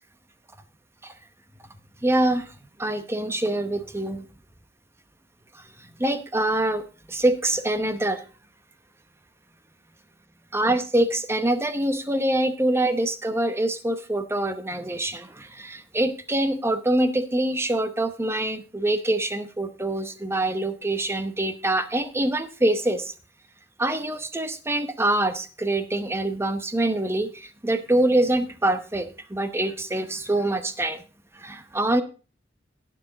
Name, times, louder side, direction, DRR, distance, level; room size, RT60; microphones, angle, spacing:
voice 1, 2.0-4.2 5.5-8.2 10.5-23.1 23.8-31.0 31.3-32.0, right 1 dB, 15° right, 10 dB, 0.9 m, -25 dB
11.0 x 9.4 x 3.9 m, 0.35 s
head